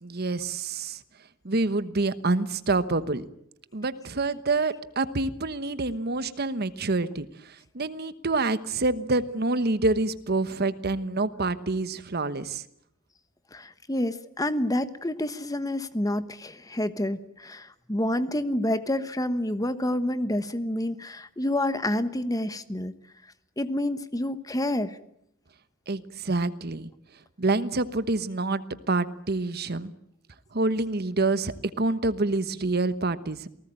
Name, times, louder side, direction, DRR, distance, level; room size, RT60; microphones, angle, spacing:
voice 1, 0.0-1.0 1.4-3.2 3.7-12.6 25.9-26.9 27.4-29.9 30.5-33.5, right 3 dB, 50° right, 13 dB, 1.2 m, -27 dB
voice 2, 13.5-22.9 23.6-25.0, left 1 dB, 20° left, 12 dB, 1.2 m, -28 dB
28.5 x 19.0 x 9.0 m, 0.74 s
head